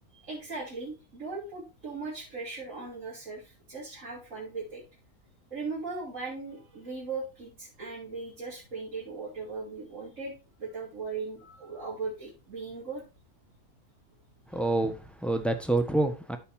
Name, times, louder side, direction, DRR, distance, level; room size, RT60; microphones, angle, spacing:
voice 1, 0.1-4.8 5.5-13.0, right 4 dB, 55° right, 3.5 m, -38 dB
voice 2, 14.5-16.4, right 2 dB, ahead, 1.2 m, -27 dB
14.0 x 5.4 x 2.7 m
omnidirectional pair, 1.6 m